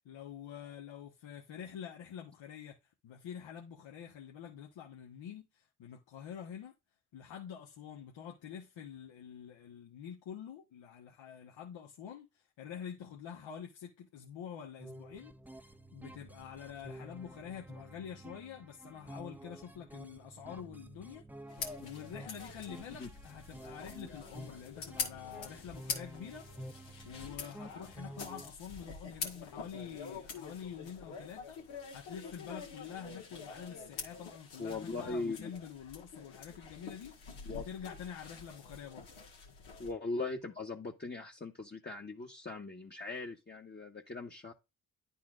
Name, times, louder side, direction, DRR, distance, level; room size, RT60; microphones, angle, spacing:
voice 1, 0.0-6.7 7.1-21.2 21.5-26.5 27.0-31.6 31.9-37.1 37.5-39.1, left 8 dB, 65° left, 1.2 m, -47 dB
sound 1, 14.8-28.5, right 1 dB, 5° right, 0.6 m, -50 dB
sound 2, 21.5-39.9, left 5 dB, 85° left, 1.7 m, -46 dB
voice 2, 34.6-35.5 37.5-37.6 39.8-44.5, left 3 dB, 20° left, 1.1 m, -40 dB
10.5 x 4.2 x 2.5 m
hypercardioid pair, 45°, 48 cm